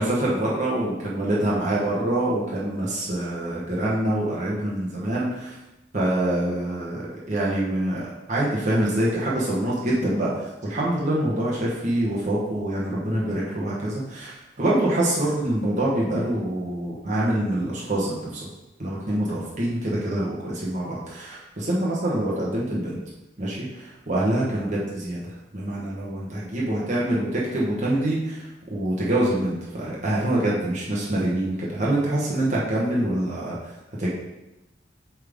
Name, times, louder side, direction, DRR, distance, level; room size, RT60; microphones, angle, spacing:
voice 1, 0.0-5.6 5.9-18.5 18.8-23.0 23.4-33.6 34.0-34.1, right 1 dB, 40° right, -6 dB, 1.1 m, -25 dB
7.6 x 3.5 x 3.5 m, 1.0 s
head